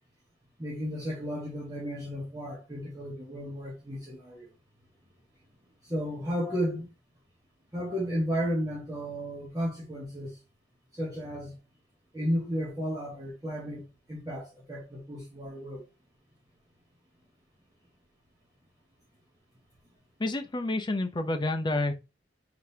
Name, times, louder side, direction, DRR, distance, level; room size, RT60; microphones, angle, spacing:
voice 1, 0.6-4.5 5.8-6.9 7.7-10.4 10.9-11.6 12.1-15.8, equal, 20° right, 1.2 m, -33 dB
voice 2, 20.2-21.9, left 2 dB, 25° left, 0.6 m, -29 dB
4.8 x 3.8 x 2.8 m
head